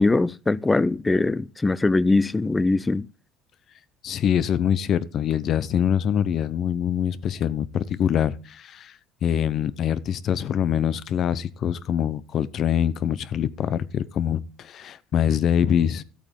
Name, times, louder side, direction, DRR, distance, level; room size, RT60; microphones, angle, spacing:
voice 1, 0.0-3.1, left 3 dB, 10° left, 0.4 m, -21 dB
voice 2, 4.0-9.0 9.2-16.0, left 9 dB, 45° left, 0.7 m, -24 dB
14.0 x 8.5 x 3.7 m
cardioid pair, 140°, 0 cm